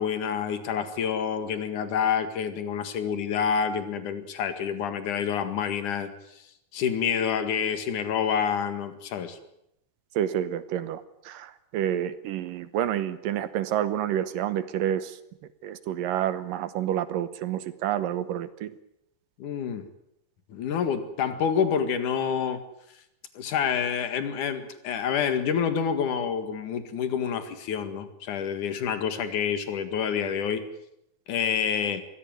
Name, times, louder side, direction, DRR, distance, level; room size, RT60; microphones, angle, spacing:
voice 1, 0.0-6.4 6.7-9.4 19.4-19.9 20.5-22.6 23.3-30.7 31.3-32.0, left 7 dB, 60° left, 9 dB, 3.3 m, -28 dB
voice 2, 10.2-15.2 15.6-18.7, right 11 dB, 75° right, 13 dB, 2.6 m, -29 dB
23.5 x 16.5 x 9.4 m, 0.80 s
omnidirectional pair, 4.2 m